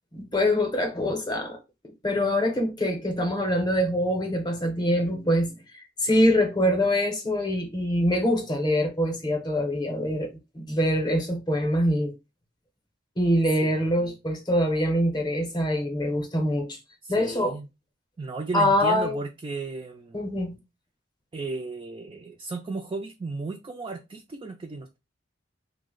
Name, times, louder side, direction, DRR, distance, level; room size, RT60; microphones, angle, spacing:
voice 1, 0.1-1.6 2.0-12.1 13.2-16.8 17.1-17.6 18.5-19.2 20.1-20.6, left 1 dB, 20° left, 0.7 m, -24 dB
voice 2, 13.6-14.2 17.0-17.7 18.2-20.2 21.3-25.0, right 3 dB, 25° right, 0.3 m, -35 dB
3.2 x 2.1 x 3.6 m
head